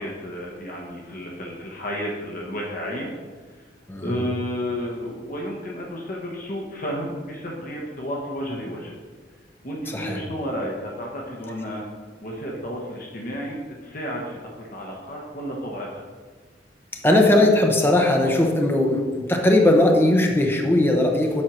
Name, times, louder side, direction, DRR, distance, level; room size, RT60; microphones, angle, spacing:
voice 1, 0.0-3.1 3.5-3.6 4.0-8.9 9.6-11.8 12.2-16.0, equal, 50° left, -2 dB, 1.1 m, -32 dB
voice 2, 3.9-4.2 9.9-10.2 17.0-21.4, left 1 dB, 10° left, 1 dB, 0.8 m, -19 dB
7.6 x 4.5 x 6.1 m, 1.5 s
head